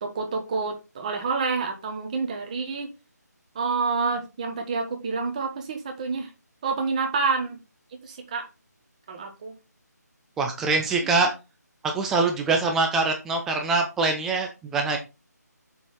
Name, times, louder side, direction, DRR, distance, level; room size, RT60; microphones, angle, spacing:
voice 1, 0.0-2.9 3.5-6.3 6.6-7.6 8.0-8.5 9.1-9.6 11.0-11.3, right 4 dB, 25° right, 1.4 m, -28 dB
voice 2, 10.4-11.3 11.9-15.0, right 3 dB, 5° right, 0.4 m, -24 dB
6.9 x 5.6 x 4.6 m
figure-of-eight pair, 155°, 10 cm